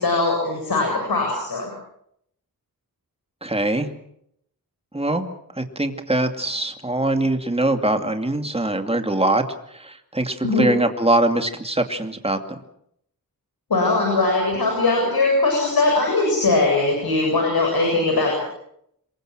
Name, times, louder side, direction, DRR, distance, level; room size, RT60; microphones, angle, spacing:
voice 1, 0.0-1.7 10.4-10.7 13.7-18.4, left 3 dB, 85° left, 1 dB, 7.6 m, -20 dB
voice 2, 3.4-3.9 4.9-5.2 5.6-9.4 9.7-12.4, right 1 dB, 15° right, 6 dB, 2.5 m, -22 dB
27.0 x 22.5 x 6.3 m, 0.72 s
wide cardioid pair, 95°, 36 cm